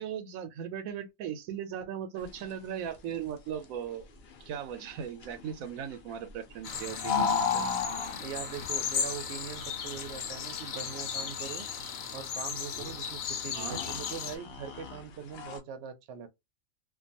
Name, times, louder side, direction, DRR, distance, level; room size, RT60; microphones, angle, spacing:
voice 1, 0.0-4.1 4.5-7.6 13.5-13.8, right 9 dB, 90° right, 1.0 m, -38 dB
sound 1, 2.2-15.6, left 6 dB, 60° left, 0.8 m, -37 dB
sound 2, 6.6-14.4, left 7 dB, 80° left, 1.0 m, -36 dB
voice 2, 8.2-11.7 12.1-16.3, right 7 dB, 65° right, 0.8 m, -42 dB
2.4 x 2.2 x 2.6 m
omnidirectional pair, 1.4 m